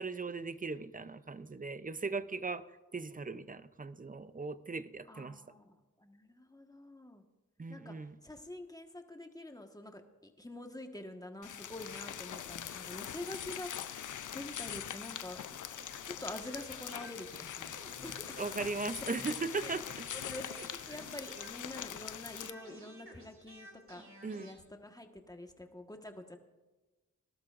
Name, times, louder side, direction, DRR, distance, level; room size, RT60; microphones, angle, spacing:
voice 1, 0.0-2.7 2.9-5.4 7.6-8.2 18.4-20.1 24.2-24.5, right 4 dB, 25° right, 14 dB, 0.6 m, -38 dB
voice 2, 5.1-7.2 7.7-8.0 8.2-14.0 14.3-15.4 16.0-18.4 18.7-19.2 19.6-19.7 20.1-26.4, left 1 dB, 10° left, 5 dB, 1.4 m, -47 dB
sound 1, 11.4-22.5, left 9 dB, 75° left, 0.6 m, -43 dB
sound 2, 15.8-22.0 22.4-24.6, right 1 dB, 40° right, 2.9 m, -54 dB
19.5 x 12.0 x 2.5 m, 1.2 s
cardioid pair, 55°, 31 cm